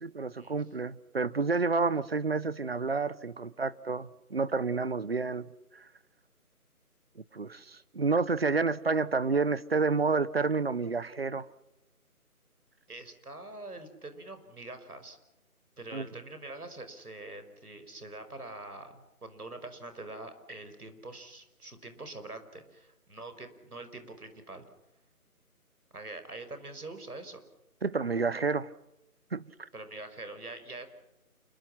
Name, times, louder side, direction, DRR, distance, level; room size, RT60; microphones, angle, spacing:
voice 1, 0.0-5.5 7.3-11.4 15.9-16.1 27.8-28.7 29.3-29.4, right 4 dB, 40° right, 1.0 m, -29 dB
voice 2, 12.9-15.2 15.8-24.7 25.9-27.4 29.7-30.9, right 2 dB, 75° right, 5.8 m, -44 dB
28.5 x 23.5 x 5.9 m
figure-of-eight pair, 165°, 45 cm